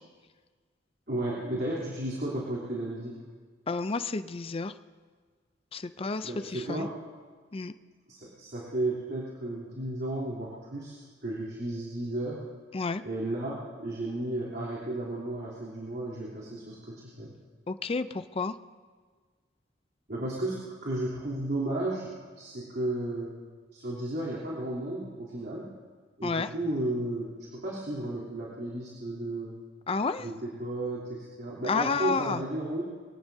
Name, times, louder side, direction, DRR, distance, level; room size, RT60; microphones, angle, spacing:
voice 1, 1.1-3.1 6.2-6.9 8.1-12.4 13.0-17.3 20.1-23.3 23.7-25.7 26.2-29.5 30.2-32.8, right 1 dB, 55° right, -6 dB, 3.3 m, -33 dB
voice 2, 3.7-4.7 5.7-6.9 7.5-7.7 12.7-13.0 17.7-18.5 26.2-26.5 29.9-30.3 31.7-32.4, left 4 dB, 30° left, 11 dB, 0.5 m, -30 dB
23.5 x 18.0 x 2.8 m, 1.5 s
head